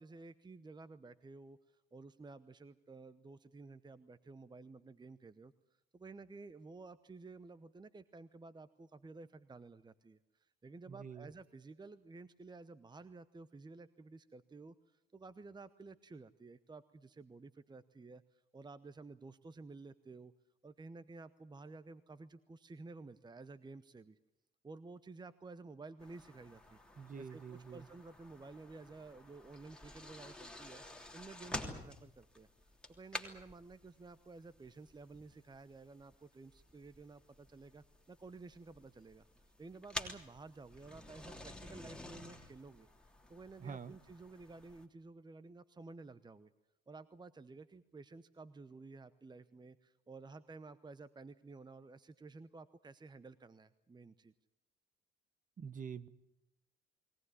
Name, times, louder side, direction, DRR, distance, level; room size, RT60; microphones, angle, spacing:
voice 1, 0.0-5.5 5.9-20.3 20.6-24.2 24.6-26.8 27.2-46.5 46.9-54.3, right 3 dB, 20° right, 15 dB, 0.9 m, -53 dB
voice 2, 10.9-11.3 27.0-27.9 43.6-43.9 55.6-56.1, right 6 dB, 40° right, 16 dB, 1.3 m, -46 dB
sound 1, 26.0-44.8, left 2 dB, 5° left, 3.1 m, -50 dB
22.0 x 18.5 x 9.9 m, 0.88 s
supercardioid pair, 70°, 21 cm